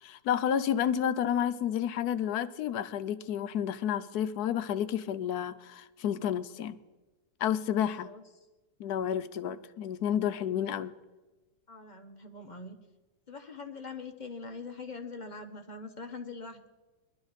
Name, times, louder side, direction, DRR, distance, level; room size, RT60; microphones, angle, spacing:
voice 1, 0.0-6.8 7.4-8.1 8.8-10.9, left 9 dB, 70° left, 13 dB, 1.1 m, -30 dB
voice 2, 11.7-12.8 13.3-16.7, left 4 dB, 35° left, 6 dB, 0.9 m, -43 dB
21.5 x 12.0 x 4.0 m, 1.1 s
omnidirectional pair, 1.9 m